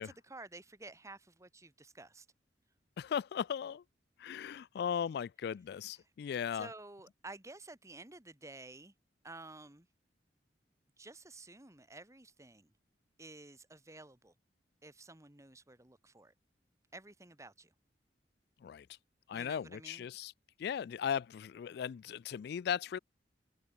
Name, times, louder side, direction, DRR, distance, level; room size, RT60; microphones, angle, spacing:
voice 1, 0.0-2.3 5.9-6.1 6.5-8.9 9.2-9.9 11.0-12.7 13.2-14.3 14.8-16.3 16.9-17.7 19.3-20.1, right 2 dB, 15° right, 1.8 m, -52 dB
voice 2, 3.0-3.8 4.2-6.7 18.6-18.8 19.3-20.3 20.6-23.0, left 8 dB, 65° left, 0.3 m, -37 dB
open air
head